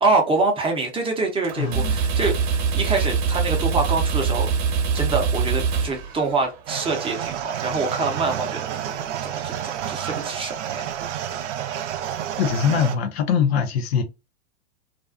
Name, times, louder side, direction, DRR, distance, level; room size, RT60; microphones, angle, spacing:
voice 1, 0.0-10.8, right 3 dB, 15° right, 0.6 m, -25 dB
sound 1, 1.4-6.6, right 5 dB, 45° right, 0.8 m, -23 dB
voice 2, 1.6-2.0 12.4-14.0, left 7 dB, 55° left, 0.6 m, -22 dB
sound 2, 6.7-12.9, right 10 dB, 70° right, 0.5 m, -30 dB
2.5 x 2.3 x 2.4 m
hypercardioid pair, 110°, 36 cm